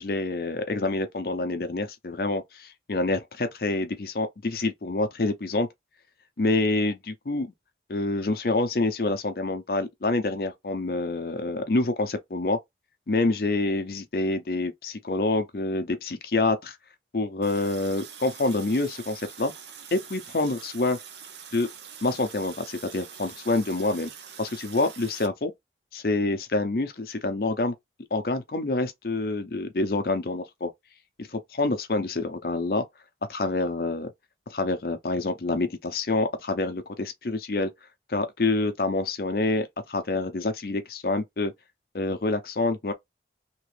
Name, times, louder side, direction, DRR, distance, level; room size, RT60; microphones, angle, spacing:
voice 1, 0.0-5.7 6.4-7.5 7.9-12.6 13.1-16.8 17.1-19.5 19.9-21.0 21.5-21.7 22.0-24.1 24.4-25.5 25.9-27.7 28.1-30.7 31.2-32.8 33.3-34.1 34.5-37.7 38.1-41.5 41.9-42.9, left 2 dB, 55° left, 0.6 m, -27 dB
Water tap faucet, 17.4-25.3, right 7 dB, 80° right, 0.7 m, -44 dB
2.9 x 2.6 x 3.2 m
head